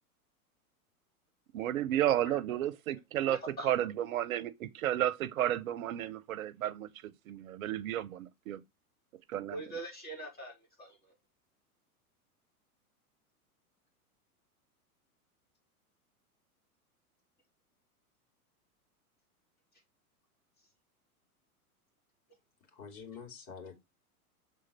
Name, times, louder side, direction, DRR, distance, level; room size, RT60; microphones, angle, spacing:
voice 1, 1.5-3.4 3.6-8.6 9.3-9.6, right 12 dB, 65° right, 0.8 m, -32 dB
voice 2, 3.2-3.7 9.5-11.1, right 1 dB, 20° left, 3.9 m, -43 dB
voice 3, 22.7-23.8, left 6 dB, 45° left, 2.9 m, -46 dB
6.3 x 3.9 x 4.1 m
hypercardioid pair, 100°, 45 cm